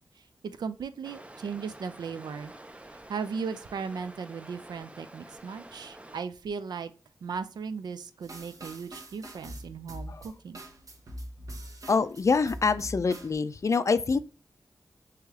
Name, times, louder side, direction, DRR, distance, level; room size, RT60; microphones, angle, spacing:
voice 1, 0.4-2.5 3.1-6.9 7.2-10.6, right 6 dB, 75° right, 0.4 m, -37 dB
sound 1, 1.0-6.2, right 1 dB, 15° right, 0.5 m, -49 dB
sound 2, 8.2-13.3, right 1 dB, 55° right, 0.8 m, -43 dB
voice 2, 11.9-14.2, left 4 dB, 45° left, 0.4 m, -25 dB
3.2 x 3.0 x 3.5 m
cardioid pair, 45°, 7 cm